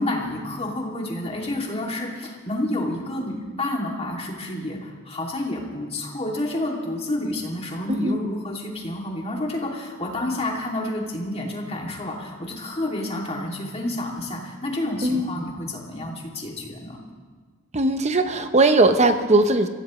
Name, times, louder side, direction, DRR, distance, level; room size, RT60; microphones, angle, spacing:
voice 1, 0.0-17.0, left 1 dB, 30° left, -1 dB, 2.7 m, -29 dB
voice 2, 7.9-8.2 15.0-15.3 17.7-19.7, right 2 dB, 35° right, 8 dB, 0.9 m, -19 dB
24.5 x 15.5 x 3.2 m, 1.5 s
head